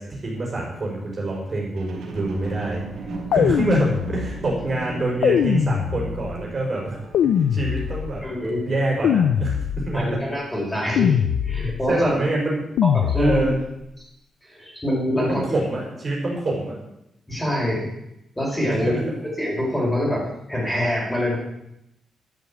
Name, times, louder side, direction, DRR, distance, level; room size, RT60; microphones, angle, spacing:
voice 1, 0.0-2.8 3.3-7.0 7.5-10.1 11.9-12.6 13.2-13.6 15.2-16.8 18.6-19.0, right 2 dB, 30° right, -2 dB, 4.9 m, -26 dB
sound 1, 1.8-9.2 9.8-9.9, right 3 dB, 75° right, 4.3 m, -36 dB
sound 2, 3.3-4.5 5.2-6.4 7.1-8.3 9.0-10.1 11.0-11.9 12.8-13.7, left 9 dB, 85° left, 0.6 m, -22 dB
voice 2, 8.2-8.6 9.9-12.1 12.9-13.6 14.5-15.4 17.3-17.9 18.4-19.1 19.4-21.4, left 1 dB, 10° left, -3 dB, 4.9 m, -25 dB
12.5 x 8.3 x 8.5 m, 0.84 s
wide cardioid pair, 145°, 0 cm